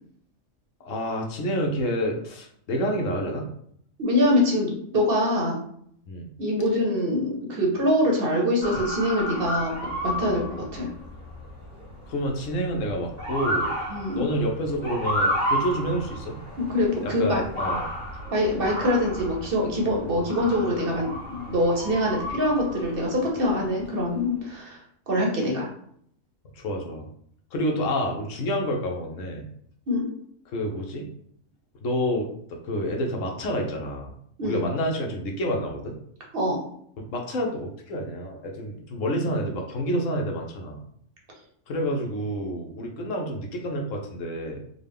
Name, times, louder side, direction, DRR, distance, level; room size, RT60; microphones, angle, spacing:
voice 1, 0.8-3.5 6.1-6.3 12.1-13.8 14.1-16.4 17.0-17.9 26.5-27.0 27.5-29.5 30.5-31.1 31.8-32.3 32.6-34.1 34.4-36.0 37.0-40.8 41.7-44.6, equal, 75° left, 1 dB, 1.1 m, -28 dB
voice 2, 4.0-5.6 6.4-9.7 10.0-10.4 10.7-10.9 13.9-14.2 16.6-17.4 18.3-21.1 21.5-24.8 25.1-25.7 29.9-30.1 34.4-34.6 36.3-36.6, left 1 dB, 50° right, -1 dB, 0.9 m, -24 dB
Motor vehicle (road) / Siren, 8.6-24.2, equal, 35° left, 1.5 m, -32 dB
3.9 x 2.2 x 3.4 m, 0.66 s
omnidirectional pair, 1.3 m